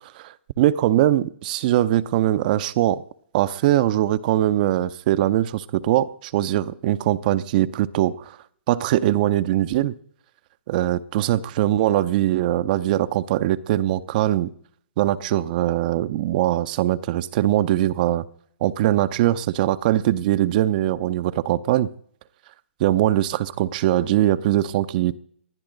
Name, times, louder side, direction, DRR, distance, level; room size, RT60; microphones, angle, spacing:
voice 1, 0.1-3.0 3.3-8.4 8.7-9.9 10.7-14.5 15.0-18.2 18.6-21.9 22.8-25.2, right 13 dB, 40° right, 15 dB, 0.6 m, -21 dB
20.0 x 11.5 x 3.9 m, 0.64 s
figure-of-eight pair, 125°, 7 cm